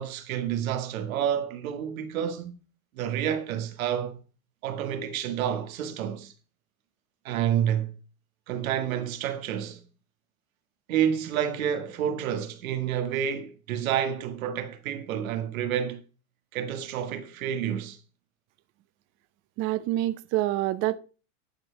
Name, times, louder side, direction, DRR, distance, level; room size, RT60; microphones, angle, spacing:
voice 1, 0.0-2.5 2.9-4.2 4.6-6.3 7.3-7.9 8.5-9.8 10.9-16.0 16.5-18.0, right 9 dB, 80° right, 1.7 m, -29 dB
voice 2, 19.6-21.0, right 16 dB, 30° right, 0.4 m, -26 dB
11.0 x 4.6 x 5.6 m
supercardioid pair, 140°, 41 cm